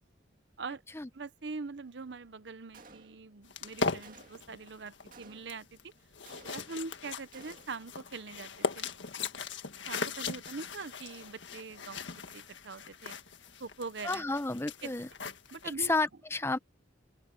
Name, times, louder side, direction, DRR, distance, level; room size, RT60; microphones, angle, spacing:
voice 1, 1.1-5.7 6.5-8.9 9.9-13.2 13.6-14.3 14.8-14.9 15.5-15.9, right 4 dB, 65° right, 0.8 m, -43 dB
Gunshot gunfire, 2.7-3.5 4.0-4.6 5.1-5.7 6.3-6.9 7.3-7.9, right 3 dB, 45° right, 2.2 m, -56 dB
sound 1, 3.5-15.7, left 4 dB, 75° left, 1.7 m, -39 dB
voice 2, 14.0-15.1 15.8-16.6, left 3 dB, 15° left, 0.8 m, -31 dB
open air
head